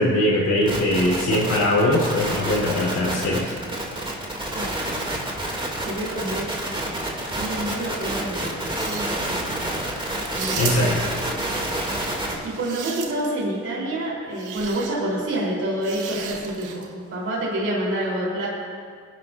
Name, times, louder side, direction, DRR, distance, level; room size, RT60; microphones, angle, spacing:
voice 1, 0.0-3.5 10.6-10.9, left 1 dB, 60° left, -5 dB, 3.6 m, -21 dB
sound 1, 0.7-12.3, right 1 dB, 15° right, 2.6 m, -28 dB
voice 2, 5.8-6.4 7.4-9.7 10.3-10.9 12.4-18.5, right 1 dB, 50° right, -5 dB, 3.7 m, -28 dB
sound 2, 8.6-9.3 10.2-11.1 12.3-13.4 14.3-14.9 15.8-16.9, right 7 dB, 85° right, 1.2 m, -34 dB
23.0 x 10.5 x 2.6 m, 2.1 s
cardioid pair, 90°, 30 cm